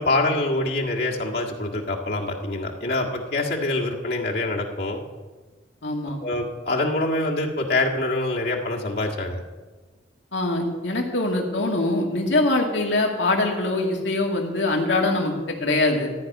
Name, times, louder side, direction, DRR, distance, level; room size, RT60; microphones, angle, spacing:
voice 1, 0.0-5.0 6.2-9.4, left 2 dB, 60° left, -2 dB, 1.8 m, -25 dB
voice 2, 5.8-6.2 10.3-16.1, left 2 dB, 90° left, 1 dB, 2.3 m, -23 dB
14.0 x 6.0 x 9.4 m, 1.3 s
head